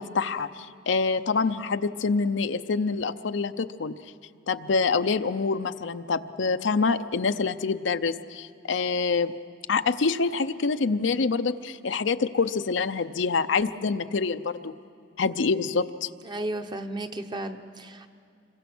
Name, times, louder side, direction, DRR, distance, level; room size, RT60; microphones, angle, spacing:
voice 1, 0.0-3.9 4.5-9.3 9.7-14.7 15.2-16.1, left 4 dB, 75° left, 10 dB, 0.6 m, -26 dB
voice 2, 16.2-18.1, right 1 dB, 25° right, 7 dB, 0.9 m, -34 dB
26.0 x 23.5 x 6.1 m, 2.4 s
head